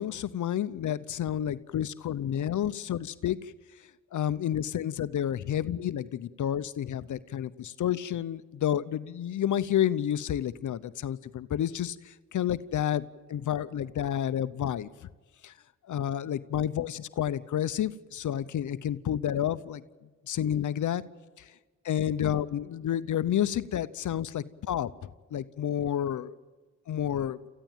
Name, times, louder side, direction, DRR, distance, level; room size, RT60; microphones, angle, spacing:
voice 1, 0.0-3.4 4.1-13.0 13.3-14.9 15.4-15.5 15.9-19.8 20.3-21.0 21.4-21.5 21.8-24.9 25.3-26.3 26.9-27.4, left 10 dB, 70° left, 15 dB, 0.8 m, -30 dB
28.5 x 15.0 x 9.0 m, 1.3 s
cardioid pair, 65°, 31 cm